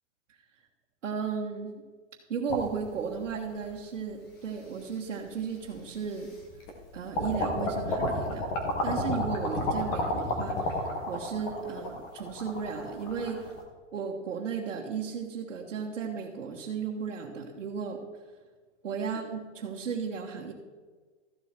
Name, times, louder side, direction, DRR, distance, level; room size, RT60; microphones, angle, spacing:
voice 1, 1.0-1.7 2.3-6.3 6.9-8.5 8.8-13.5 13.9-18.0 18.8-20.5, right 6 dB, 90° right, -2 dB, 1.6 m, -35 dB
sound 1, 2.5-3.6 4.4-4.5 5.7-5.8 6.2-6.8 7.1-13.6, left 1 dB, 10° left, 0.6 m, -31 dB
13.5 x 7.5 x 4.5 m, 1.4 s
hypercardioid pair, 170°, 36 cm